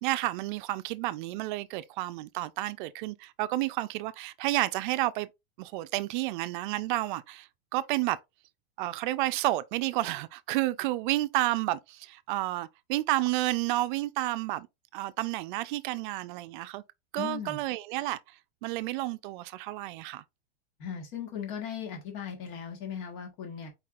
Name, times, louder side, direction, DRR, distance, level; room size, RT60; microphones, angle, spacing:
voice 1, 0.0-5.3 5.6-8.2 8.8-14.7 14.9-16.8 17.1-18.2 18.6-20.2, right 17 dB, 55° right, 0.4 m, -31 dB
voice 2, 17.2-17.6 20.8-23.7, left 8 dB, 50° left, 1.6 m, -38 dB
4.7 x 4.1 x 2.4 m
supercardioid pair, 140°, 30 cm